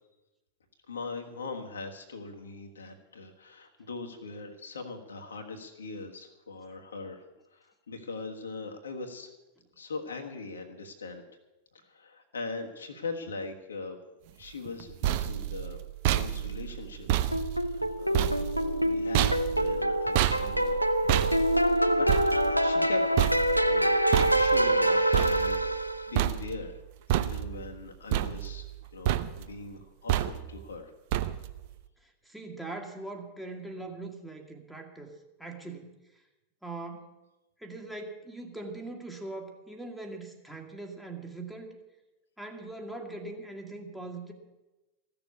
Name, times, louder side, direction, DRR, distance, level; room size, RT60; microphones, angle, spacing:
voice 1, 0.9-9.3 9.8-11.2 11.7-14.0 14.4-15.8 16.1-17.1 17.5-18.3 18.8-20.8 21.4-23.1 23.6-26.8 27.1-28.6 28.9-30.9, left 3 dB, 70° left, 3 dB, 1.4 m, -41 dB
sound 1, 14.7-25.9 26.1-26.8 27.1-27.7 28.1-28.8 29.0-29.6 30.1-30.6 31.1-31.6, right 13 dB, 50° right, 0.6 m, -30 dB
sound 2, 17.3-26.2, right 1 dB, 90° left, 0.6 m, -26 dB
voice 2, 32.0-35.9 36.6-37.1 37.6-41.8 42.4-44.3, right 2 dB, ahead, 1 dB, 1.8 m, -41 dB
14.5 x 7.0 x 9.7 m, 1.0 s
figure-of-eight pair, 90°, 0 cm